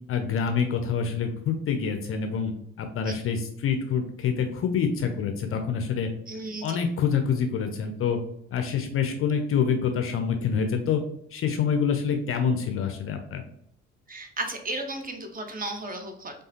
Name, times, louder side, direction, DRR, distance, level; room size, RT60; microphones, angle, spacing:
voice 1, 0.1-2.5 2.8-6.1 6.6-8.2 8.5-11.0 11.3-13.4, left 6 dB, 35° left, 6 dB, 0.5 m, -26 dB
voice 2, 6.3-6.8 14.1-16.4, right 2 dB, 25° right, 5 dB, 0.7 m, -34 dB
4.7 x 2.4 x 2.8 m, 0.69 s
figure-of-eight pair, 45°, 37 cm